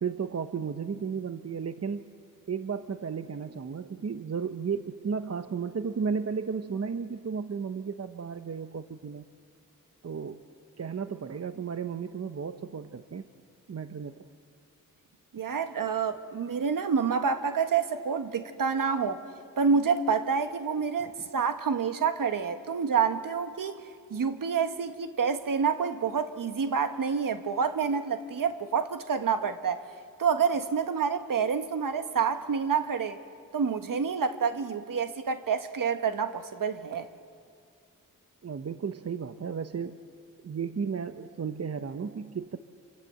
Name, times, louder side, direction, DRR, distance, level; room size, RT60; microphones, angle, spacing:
voice 1, 0.0-2.1 2.5-9.2 10.0-10.4 10.8-13.3 13.7-14.3 38.4-40.0 40.4-42.6, right 6 dB, 45° right, 1.0 m, -34 dB
voice 2, 15.3-19.2 19.6-23.8 24.1-29.8 30.2-33.2 33.5-37.1, right 6 dB, 70° right, 1.6 m, -28 dB
27.0 x 27.0 x 7.7 m
cardioid pair, 60°, 34 cm